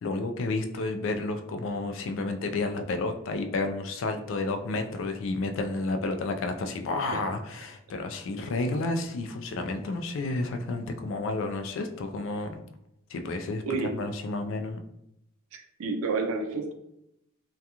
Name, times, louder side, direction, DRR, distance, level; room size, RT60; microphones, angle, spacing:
voice 1, 0.0-12.6 13.1-13.6 13.9-14.8, left 2 dB, 65° left, 6 dB, 0.3 m, -31 dB
voice 2, 15.5-16.7, right 4 dB, 80° right, 4 dB, 0.4 m, -30 dB
2.3 x 2.3 x 2.8 m, 0.82 s
head